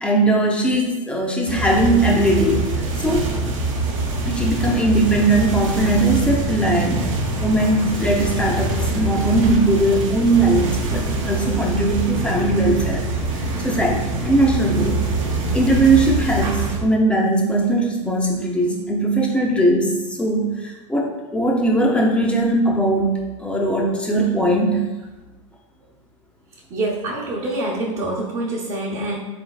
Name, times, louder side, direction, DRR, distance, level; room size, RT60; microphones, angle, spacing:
voice 1, 0.0-2.6 3.0-3.3 4.2-7.1 7.4-13.1 13.6-15.0 15.5-23.1 23.4-24.9, right 1 dB, 5° left, -1 dB, 0.6 m, -19 dB
sound 1, 1.5-16.8, right 2 dB, 75° right, 0.8 m, -24 dB
voice 2, 26.7-29.2, right 2 dB, 45° right, -7 dB, 0.9 m, -25 dB
3.7 x 3.4 x 2.3 m, 1.1 s
hypercardioid pair, 110°, 17 cm